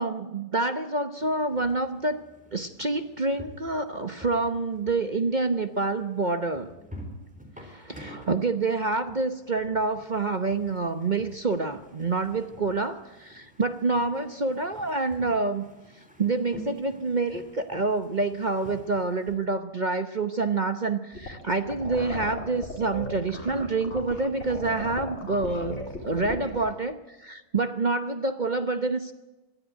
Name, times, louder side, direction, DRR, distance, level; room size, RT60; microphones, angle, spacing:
voice 1, 0.0-2.2 2.5-6.7 7.6-15.7 16.2-29.1, right 3 dB, 35° right, 9 dB, 0.9 m, -27 dB
sound 1, 1.2-19.3, equal, 5° right, 4.2 m, -48 dB
sound 2, 21.1-26.7, left 2 dB, 45° left, 4.3 m, -36 dB
22.5 x 14.0 x 9.2 m, 1.1 s
omnidirectional pair, 1.6 m